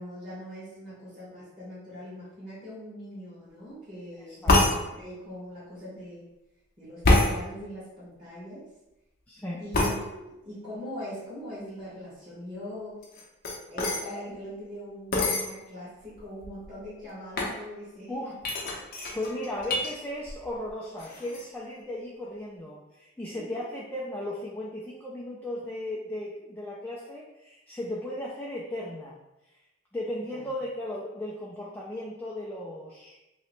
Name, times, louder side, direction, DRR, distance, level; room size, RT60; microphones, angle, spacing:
voice 1, 0.0-6.3 6.8-8.7 9.6-13.0 13.7-18.1 23.3-23.4 30.2-30.5, equal, 30° right, -11 dB, 1.3 m, -41 dB
sound 1, 4.5-4.7 7.0-7.3 9.7-10.0 13.0-14.0 15.1-15.5 16.2-16.3 16.4-16.8 17.3-17.6 18.4-19.9 20.2-20.7 21.0-21.4, left 2 dB, 50° left, 0.6 m, -25 dB
voice 2, 9.3-9.7 18.1-18.3 18.9-29.2 29.9-33.2, left 1 dB, 10° left, -5 dB, 0.4 m, -36 dB
3.1 x 2.8 x 3.1 m, 0.97 s
head